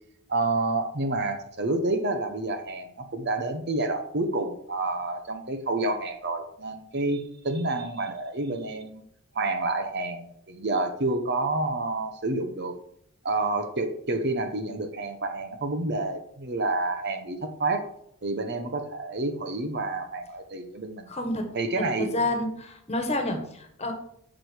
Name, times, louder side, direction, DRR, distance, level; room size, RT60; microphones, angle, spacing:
voice 1, 0.3-9.0 9.3-12.8 13.2-17.8 18.2-21.1 21.5-22.1, right 2 dB, 50° right, 7 dB, 1.0 m, -29 dB
voice 2, 21.1-21.5 22.0-23.9, left 1 dB, 30° left, 4 dB, 1.6 m, -29 dB
7.7 x 6.3 x 6.4 m, 0.72 s
head